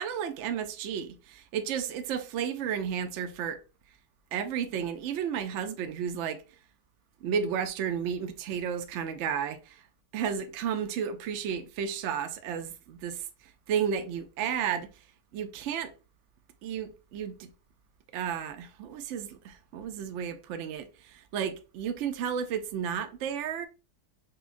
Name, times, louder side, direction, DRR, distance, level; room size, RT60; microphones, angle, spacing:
voice 1, 0.0-3.6 4.3-6.4 7.2-9.8 10.1-13.3 13.7-14.9 15.3-15.9 16.6-17.5 18.1-23.7, right 8 dB, 85° right, 0.6 m, -32 dB
5.5 x 2.3 x 2.4 m
omnidirectional pair, 1.8 m